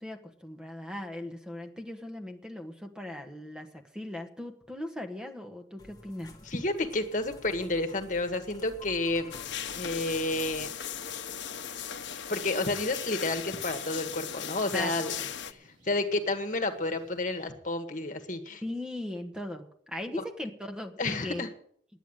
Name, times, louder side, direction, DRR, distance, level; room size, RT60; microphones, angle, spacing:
voice 1, 0.0-6.3 14.7-15.3 18.6-21.5, left 1 dB, 5° right, 5 dB, 1.3 m, -39 dB
sound 1, 5.8-10.7, left 2 dB, 20° left, 1.6 m, -52 dB
voice 2, 6.4-9.3 9.7-10.7 12.3-15.1 15.5-18.6 20.2-20.3 21.0-21.5, left 2 dB, 45° left, 6 dB, 1.5 m, -30 dB
sound 2, 9.3-15.5, left 8 dB, 80° left, 0.9 m, -38 dB
sound 3, 12.3-17.5, right 1 dB, 45° right, 5.9 m, -58 dB
10.5 x 9.1 x 8.9 m, 0.63 s
head